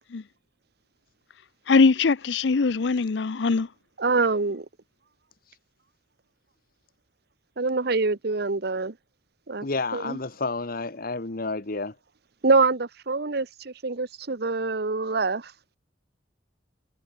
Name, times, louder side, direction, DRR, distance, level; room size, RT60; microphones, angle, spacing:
voice 1, 1.7-3.7, left 4 dB, 65° left, 0.6 m, -21 dB
voice 2, 4.0-4.6 7.6-8.9 9.5-9.7 9.9-10.2 12.4-15.4, right 3 dB, 60° right, 1.0 m, -25 dB
voice 3, 9.6-11.9, left 3 dB, 50° left, 1.3 m, -30 dB
head